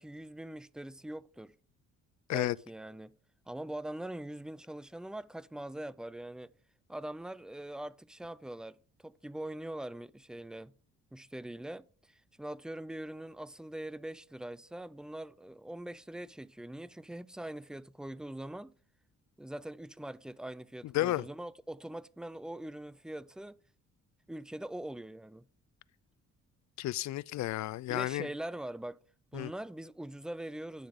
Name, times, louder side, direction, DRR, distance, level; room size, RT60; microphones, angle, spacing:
voice 1, 0.0-1.5 2.3-3.2 3.5-6.5 6.9-10.7 11.1-18.7 19.4-23.6 24.3-25.5 27.9-29.0 29.3-30.9, right 1 dB, 5° right, 0.3 m, -42 dB
voice 2, 20.9-21.2 26.8-28.3 29.3-29.5, left 16 dB, 65° left, 0.5 m, -32 dB
9.9 x 6.8 x 3.7 m
cardioid pair, 90°, 30 cm